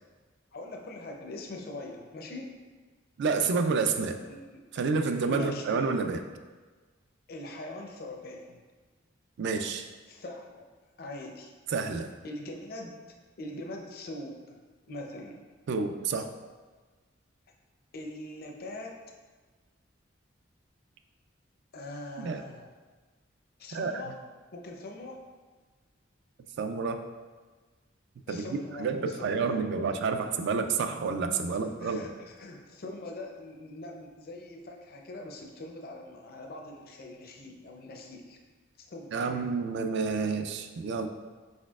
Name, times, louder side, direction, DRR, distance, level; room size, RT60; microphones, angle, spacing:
voice 1, 0.5-2.5 4.3-4.9 5.3-6.0 7.3-8.6 10.1-10.7 11.0-11.5 12.2-13.0 13.4-14.6 14.9-15.4 17.9-18.9 21.7-22.7 23.6-24.2 24.5-25.2 28.3-29.6 31.5-38.4 38.8-39.4, left 1 dB, 50° left, 1 dB, 0.6 m, -42 dB
voice 2, 3.2-4.2 4.8-6.2 9.4-9.9 11.7-12.1 15.7-16.3 22.2-22.4 23.7-24.0 26.6-27.0 28.3-28.5 28.8-32.1 39.1-41.1, right 4 dB, 60° right, 7 dB, 0.3 m, -29 dB
4.7 x 4.3 x 2.4 m, 1.4 s
head